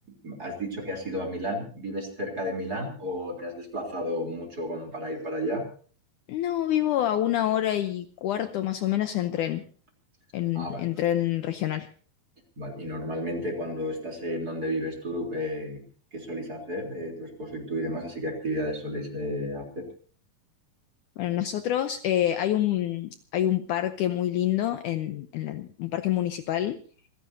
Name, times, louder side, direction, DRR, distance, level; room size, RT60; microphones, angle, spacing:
voice 1, 0.2-5.6 10.5-10.8 12.6-15.8 16.1-19.8, equal, 25° right, 1 dB, 3.8 m, -32 dB
voice 2, 6.3-9.6 10.3-11.9 21.2-26.8, left 12 dB, 70° left, 9 dB, 2.1 m, -27 dB
27.0 x 16.0 x 2.8 m, 0.42 s
omnidirectional pair, 4.2 m